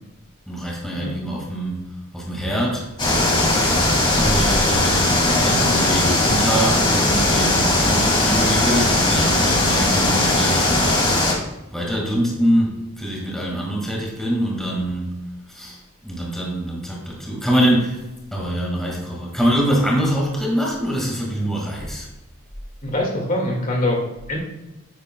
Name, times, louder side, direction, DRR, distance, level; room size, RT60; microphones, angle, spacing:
voice 1, 0.5-1.8 2.1-2.9 4.2-5.2 5.4-10.7 11.7-15.2 15.5-15.8 16.0-18.0 18.3-22.1, equal, ahead, -2 dB, 1.8 m, -24 dB
sound 1, 3.0-11.3, left 1 dB, 20° left, 1.8 m, -18 dB
voice 2, 22.8-24.4, left 1 dB, 40° left, 0 dB, 1.9 m, -24 dB
9.8 x 9.5 x 2.2 m, 1.0 s
head